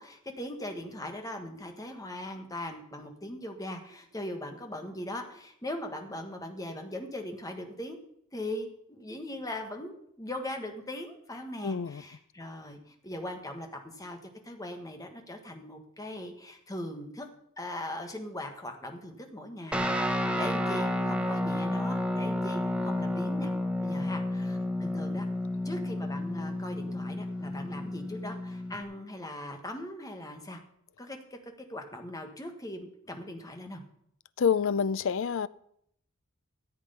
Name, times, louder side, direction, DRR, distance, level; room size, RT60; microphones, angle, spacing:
voice 1, 0.0-8.0 8.3-14.2 14.4-17.3 17.6-23.5 23.8-25.3 25.6-30.6 31.0-33.8, left 1 dB, 15° left, 1.4 m, -40 dB
voice 2, 11.6-12.0 34.4-35.5, left 6 dB, 65° left, 0.4 m, -27 dB
Guitar, 19.7-28.8, left 1 dB, 5° right, 1.0 m, -31 dB
14.0 x 7.8 x 5.5 m
head